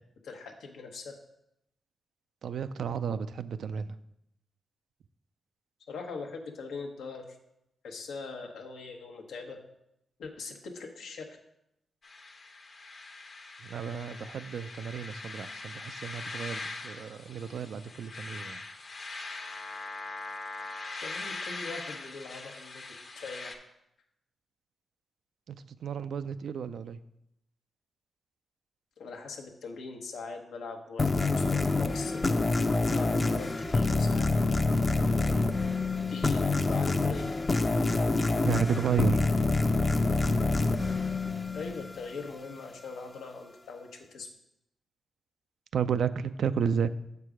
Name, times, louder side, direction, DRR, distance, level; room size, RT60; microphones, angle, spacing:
voice 1, 0.2-1.1 5.9-7.4 7.8-9.6 10.2-11.3 21.0-22.8 23.1-23.6 29.0-32.2 32.9-34.3 36.1-37.3 41.5-44.3, left 4 dB, 85° left, 3 dB, 0.9 m, -41 dB
voice 2, 2.4-4.0 13.6-18.6 25.5-27.0 38.4-39.3 45.7-46.9, right 7 dB, 80° right, 12 dB, 0.3 m, -32 dB
sound 1, 12.0-23.5, left 3 dB, 55° left, 0.9 m, -41 dB
sound 2, 31.0-42.2, left 3 dB, 35° left, 0.5 m, -27 dB
7.0 x 4.7 x 4.8 m, 0.82 s
cardioid pair, 65°, 0 cm